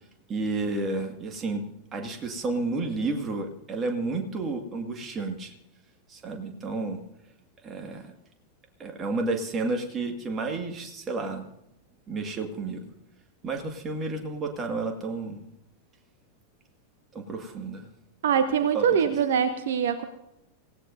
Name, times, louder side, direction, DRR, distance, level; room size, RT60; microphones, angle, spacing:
voice 1, 0.3-1.6 1.9-5.5 6.1-7.0 7.6-8.1 8.8-11.5 12.1-12.9 13.4-15.4 17.1-17.9 18.7-18.8, right 3 dB, 25° right, 4 dB, 2.0 m, -31 dB
voice 2, 18.2-20.0, right 7 dB, 60° right, 11 dB, 0.9 m, -23 dB
26.5 x 16.5 x 2.7 m, 0.84 s
figure-of-eight pair, 90°, 0 cm